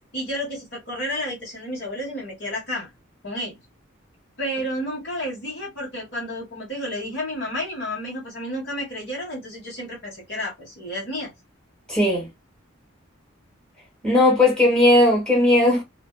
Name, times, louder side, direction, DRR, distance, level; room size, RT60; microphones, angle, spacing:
voice 1, 0.1-2.9 3.2-3.6 4.4-11.3, equal, 55° left, 1.3 m, -31 dB
voice 2, 11.9-12.3 14.0-15.8, left 1 dB, 5° left, 1.1 m, -17 dB
2.5 x 2.3 x 2.2 m
head